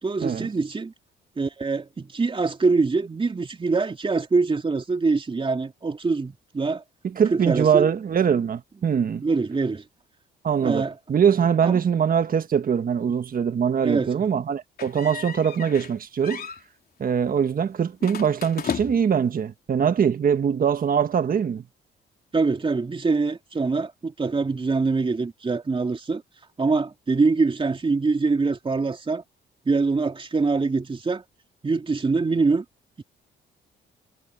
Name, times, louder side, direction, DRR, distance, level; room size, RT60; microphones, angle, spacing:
voice 1, 0.0-0.9 1.4-6.8 7.3-7.9 9.2-9.8 10.6-10.9 11.6-11.8 13.8-14.1 22.3-26.2 26.6-29.2 29.6-31.2 31.6-32.6 33.0-33.1, right 4 dB, 25° right, 2.9 m, -24 dB
voice 2, 7.0-9.2 10.4-16.5 17.0-21.6, right 7 dB, 45° right, 1.5 m, -22 dB
Closing squeaky door, 14.8-16.0 16.2-16.6 18.0-19.2, left 7 dB, 50° left, 4.0 m, -34 dB
cardioid pair, 90°, 20 cm